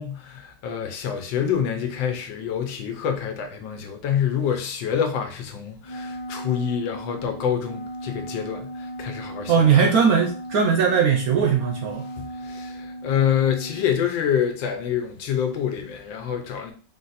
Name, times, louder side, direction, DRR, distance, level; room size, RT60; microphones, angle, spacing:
voice 1, 0.0-9.8 12.2-16.7, left 8 dB, 80° left, 1.5 m, -26 dB
Wind instrument woodwind instrument, 5.8-14.0, right 1 dB, 55° left, 0.5 m, -37 dB
voice 2, 9.5-12.1, right 6 dB, 65° right, 0.9 m, -19 dB
4.1 x 2.6 x 4.0 m
omnidirectional pair, 2.1 m